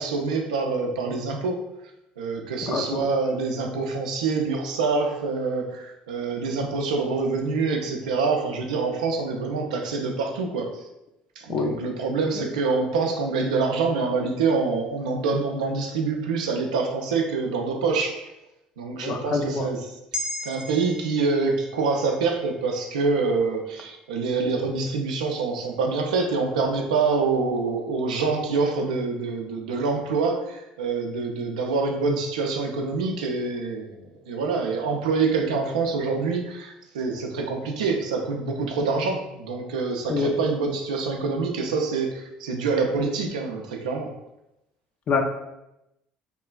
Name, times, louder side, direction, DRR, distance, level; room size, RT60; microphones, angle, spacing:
voice 1, 0.0-1.6 2.2-10.8 11.4-18.3 18.8-19.9 20.4-44.1, right 4 dB, 75° right, 2 dB, 0.4 m, -26 dB
voice 2, 2.7-3.1 11.5-11.8 19.0-19.7 40.1-40.3 45.1-45.2, left 4 dB, 45° left, 4 dB, 0.4 m, -25 dB
sound 1, 20.1-24.6 25.0-25.2, left 1 dB, 25° right, 0.5 m, -39 dB
3.0 x 2.3 x 2.2 m, 0.89 s
figure-of-eight pair, 60°, 4 cm